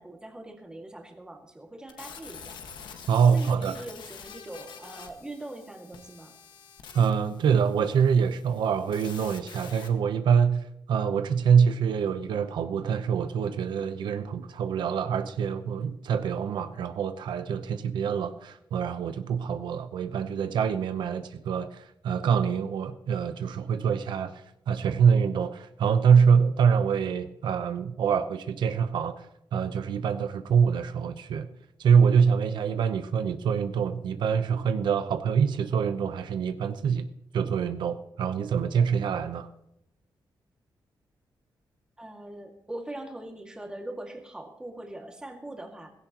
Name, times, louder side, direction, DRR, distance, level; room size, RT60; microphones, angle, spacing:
voice 1, 0.0-2.6 3.3-6.3 42.0-45.9, right 1 dB, 10° right, 2 dB, 2.1 m, -42 dB
sound 1, 1.9-9.9, left 6 dB, 90° left, 1.7 m, -47 dB
voice 2, 3.1-3.8 6.9-29.3 29.5-31.5 31.8-37.1 37.3-39.5, right 6 dB, 90° right, 9 dB, 0.9 m, -25 dB
17.5 x 16.0 x 3.0 m, 0.81 s
wide cardioid pair, 160°, 8 cm